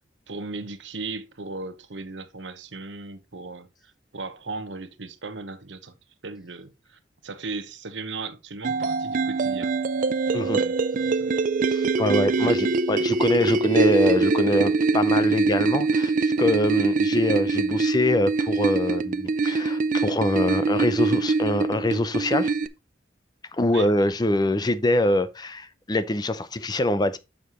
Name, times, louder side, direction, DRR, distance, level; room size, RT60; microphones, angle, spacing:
voice 1, 0.3-5.9 6.2-9.7 10.6-11.3 12.4-12.5 23.7-23.9, right 3 dB, 85° right, 1.0 m, -37 dB
sound 1, 8.6-22.7, right 3 dB, 45° right, 0.4 m, -23 dB
voice 2, 11.7-22.5 23.5-27.2, left 1 dB, 20° left, 0.5 m, -24 dB
7.2 x 6.5 x 3.0 m
head